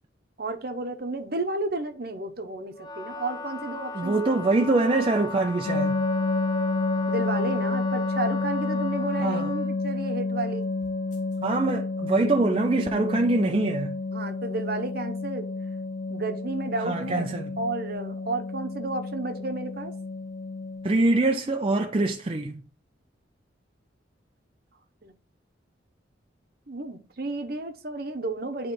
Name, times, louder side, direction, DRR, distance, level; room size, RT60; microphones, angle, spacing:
voice 1, 0.4-4.4 7.1-10.7 14.1-15.5 16.1-17.3 17.6-19.9 25.0-25.1 26.7-28.7, right 2 dB, 55° right, 0.9 m, -32 dB
Wind instrument woodwind instrument, 2.7-9.8, left 2 dB, 20° left, 0.7 m, -37 dB
voice 2, 3.9-6.0 9.2-9.5 11.4-14.0 16.8-17.6 20.8-22.6, right 2 dB, 30° right, 0.5 m, -24 dB
sound 1, 5.6-21.0, left 3 dB, 40° left, 1.4 m, -30 dB
9.5 x 3.2 x 4.5 m
head